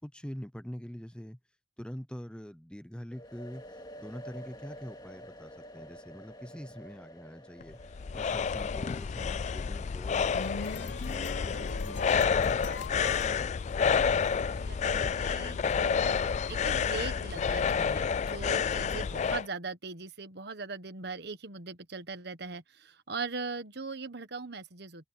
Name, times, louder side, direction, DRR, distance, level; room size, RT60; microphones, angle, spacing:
voice 1, 0.0-1.4 1.8-7.8 8.1-12.6, equal, 5° left, 0.8 m, -44 dB
sound 1, 3.1-10.8, equal, 20° left, 2.4 m, -50 dB
sound 2, 7.6-19.5, left 6 dB, 40° left, 0.3 m, -29 dB
sound 3, 10.0-14.3, left 3 dB, 70° left, 1.1 m, -42 dB
voice 2, 13.9-16.2 16.5-25.1, right 4 dB, 60° right, 1.4 m, -40 dB
head